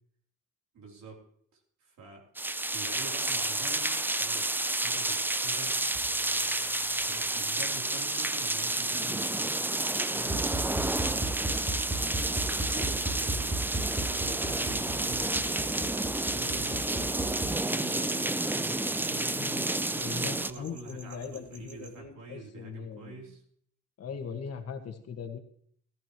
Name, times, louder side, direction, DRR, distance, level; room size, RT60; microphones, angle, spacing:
voice 1, 0.7-1.2 1.5-2.3 2.7-5.8 7.1-9.4 10.0-11.4 12.1-13.5 13.9-15.9 16.3-19.4 19.8-23.4, right 3 dB, 70° right, -1 dB, 3.5 m, -46 dB
sound 1, 2.4-20.5, right 2 dB, 5° right, 0.4 m, -30 dB
sound 2, 5.7-22.0, right 3 dB, 50° right, 2.2 m, -52 dB
sound 3, 10.2-17.5, right 2 dB, 30° right, 3.9 m, -34 dB
voice 2, 19.3-23.2 24.0-25.4, left 6 dB, 55° left, 4 dB, 1.7 m, -40 dB
14.0 x 13.5 x 3.1 m, 0.64 s
cardioid pair, 90°, 30 cm